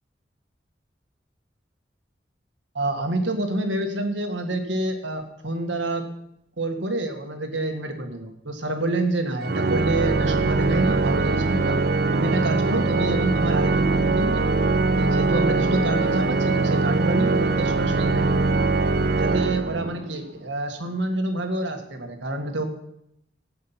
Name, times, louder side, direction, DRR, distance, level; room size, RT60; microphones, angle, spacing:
voice 1, 2.7-6.1 6.6-11.8 12.1-14.5 14.9-18.6 19.2-22.6, right 2 dB, 85° right, 5 dB, 1.9 m, -27 dB
Organ, 9.4-20.2, right 3 dB, 60° right, 0.6 m, -22 dB
14.5 x 8.7 x 5.8 m, 0.79 s
head